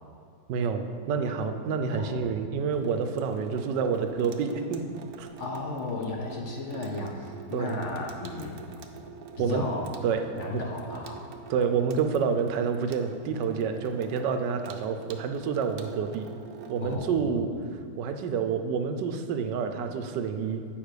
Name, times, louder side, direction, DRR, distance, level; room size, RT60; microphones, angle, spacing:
voice 1, 0.5-4.8 5.2-5.3 7.5-7.8 9.4-9.6 10.0-10.3 11.5-16.3 16.7-17.5 18.0-20.6, right 6 dB, 85° right, 7 dB, 1.3 m, -28 dB
voice 2, 1.9-2.3 5.4-8.6 9.4-9.9 10.3-11.3 16.8-17.4, left 3 dB, 55° left, 0 dB, 0.9 m, -34 dB
Water tap faucet / Sink (filling or washing), 2.7-17.0, right 6 dB, 65° right, 1.0 m, -45 dB
8.9 x 5.5 x 4.9 m, 2.4 s
omnidirectional pair, 1.8 m